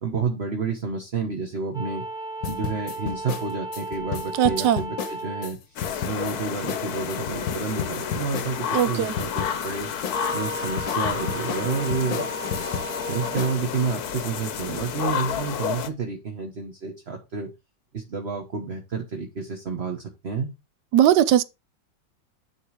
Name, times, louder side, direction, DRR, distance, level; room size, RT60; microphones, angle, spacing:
voice 1, 0.0-2.0 2.4-9.9 10.3-12.3 13.1-17.5 17.9-20.5, right 5 dB, 40° right, 1.4 m, -30 dB
sound 1, 1.7-5.5 10.1-13.6, right 1 dB, 5° right, 0.5 m, -35 dB
sound 2, 2.4-5.5 5.8-6.4 6.7-6.8 7.1-8.9 9.2-9.7 10.0-13.0 13.4-13.6, left 7 dB, 85° left, 1.7 m, -32 dB
voice 2, 4.4-4.8 8.7-9.1 20.9-21.4, right 11 dB, 75° right, 1.2 m, -19 dB
sound 3, 5.8-15.9, left 8 dB, 60° left, 1.3 m, -30 dB
10.5 x 3.9 x 4.8 m
omnidirectional pair, 2.0 m